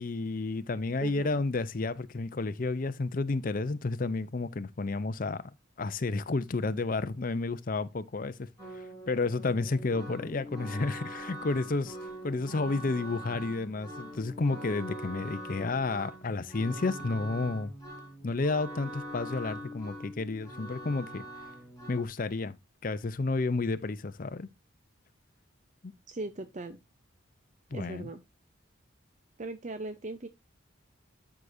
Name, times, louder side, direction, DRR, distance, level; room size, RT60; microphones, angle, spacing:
voice 1, 0.0-5.5 5.8-8.5 8.7-12.0 12.2-17.7 18.2-21.2 21.9-22.6 22.8-24.5 25.8-25.9 27.7-28.1, left 3 dB, 45° left, 0.6 m, -31 dB
voice 2, 1.0-1.4 26.1-26.8 27.7-28.2 29.4-30.3, right 2 dB, 40° right, 0.7 m, -39 dB
sound 1, 8.6-22.1, equal, 20° left, 4.1 m, -43 dB
12.5 x 4.9 x 2.6 m
head